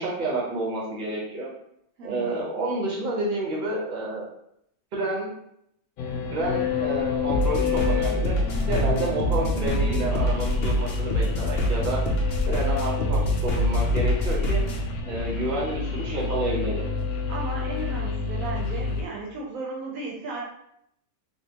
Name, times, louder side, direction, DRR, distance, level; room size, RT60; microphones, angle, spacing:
voice 1, 0.0-1.5 2.0-4.3 4.9-5.3 6.3-12.0 12.5-14.6 15.1-16.8, right 2 dB, 40° right, -3 dB, 0.9 m, -29 dB
voice 2, 2.0-2.3 17.3-20.4, right 3 dB, 70° right, -3 dB, 1.0 m, -35 dB
sound 1, 6.0-19.0, left 4 dB, 80° left, 1.1 m, -29 dB
sound 2, 7.3-14.8, equal, 60° left, 0.7 m, -25 dB
3.3 x 2.7 x 2.8 m, 0.75 s
omnidirectional pair, 1.6 m